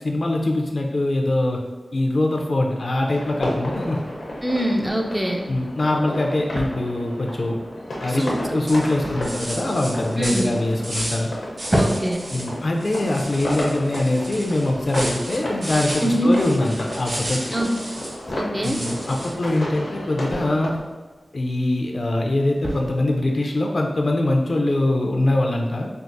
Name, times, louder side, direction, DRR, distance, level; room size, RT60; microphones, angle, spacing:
voice 1, 0.0-1.6 1.9-4.0 5.5-7.6 8.0-11.3 12.3-17.4 18.6-20.8 21.3-25.9, left 1 dB, 60° left, 1 dB, 0.5 m, -23 dB
sound 1, 3.1-20.7, left 1 dB, 85° left, 0.8 m, -33 dB
voice 2, 4.4-5.5 8.1-8.6 10.2-10.5 11.7-12.3 16.0-16.4 17.5-17.7 18.4-18.8, equal, 15° right, 1 dB, 0.4 m, -23 dB
sound 2, 5.9-24.5, equal, 35° right, 1.0 m, -35 dB
sound 3, 8.2-8.4 8.7-11.3 11.6-12.5 12.8-18.2 18.6-19.5, right 1 dB, 75° right, 0.8 m, -33 dB
4.5 x 2.0 x 2.6 m, 1.3 s
wide cardioid pair, 60°, 0 cm